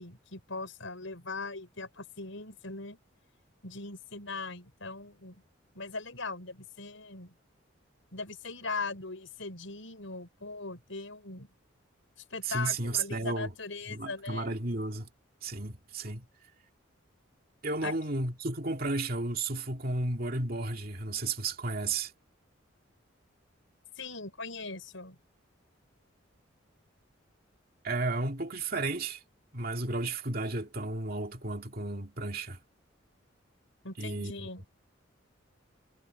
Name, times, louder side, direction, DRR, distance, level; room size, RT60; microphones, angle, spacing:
voice 1, 0.0-3.0 3.6-5.4 5.8-7.3 8.1-11.5 12.2-14.6 17.8-17.9 24.0-25.2 33.8-34.7, left 3 dB, 75° left, 5.4 m, -40 dB
voice 2, 12.4-13.5 13.9-15.1 15.4-16.3 17.6-22.1 27.8-29.2 29.5-32.6 34.0-34.5, right 2 dB, 45° right, 2.4 m, -33 dB
head